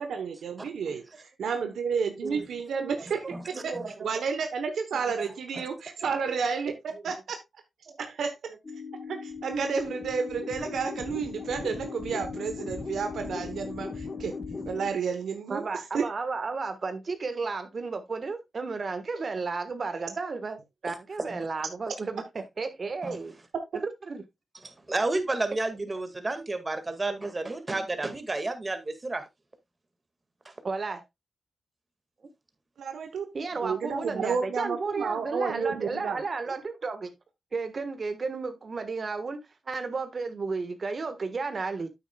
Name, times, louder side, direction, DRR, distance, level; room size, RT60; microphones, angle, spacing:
voice 1, 0.0-3.2 3.6-3.7 4.0-7.4 8.1-8.5 9.1-14.3 14.7-15.6 15.9-16.0 32.8-33.3 33.6-36.2, right 5 dB, 85° right, 1.0 m, -31 dB
voice 2, 2.8-4.1 5.1-5.3 6.7-6.8 7.9-8.0 15.5-23.4 23.7-24.2 30.6-31.0 33.3-37.1 37.5-39.4 39.7-41.9, right 4 dB, 55° right, 1.4 m, -33 dB
sound 1, 8.6-14.9, left 4 dB, 45° left, 1.6 m, -38 dB
voice 3, 24.9-29.2, right 2 dB, 35° right, 1.9 m, -31 dB
9.2 x 8.3 x 2.3 m
cardioid pair, 50°, 0 cm